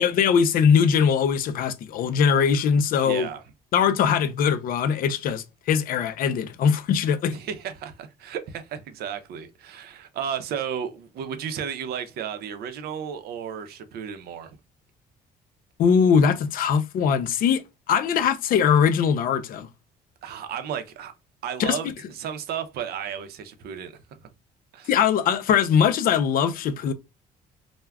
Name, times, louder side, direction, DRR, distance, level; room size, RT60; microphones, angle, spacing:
voice 1, 0.0-3.3 3.7-7.3 15.8-19.7 21.6-21.9 24.9-26.9, left 7 dB, 55° left, 0.4 m, -21 dB
voice 2, 3.0-3.4 7.3-14.5 20.2-21.1 21.4-23.9 24.7-24.9, right 8 dB, 70° right, 0.5 m, -33 dB
2.2 x 2.1 x 3.4 m
cardioid pair, 110°, 17 cm